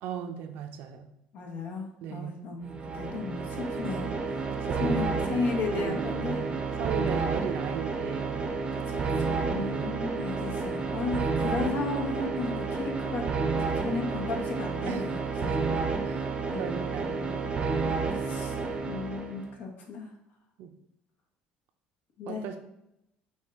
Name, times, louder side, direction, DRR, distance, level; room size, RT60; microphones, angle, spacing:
voice 1, 0.0-1.1 2.0-2.5 4.5-8.4 9.3-10.1 14.8-15.2 15.6-15.8 16.1-17.2 20.6-20.7 22.2-22.6, right 8 dB, 70° right, 7 dB, 0.5 m, -38 dB
voice 2, 1.3-4.1 4.8-6.4 8.7-13.2 13.8-15.6 16.5-17.5 18.1-18.6 18.8-20.1 22.2-22.6, left 4 dB, 65° left, 2 dB, 1.0 m, -35 dB
sound 1, 2.6-19.5, right 4 dB, 30° right, 0.6 m, -30 dB
5.4 x 2.3 x 3.4 m, 0.85 s
supercardioid pair, 100°, 3 cm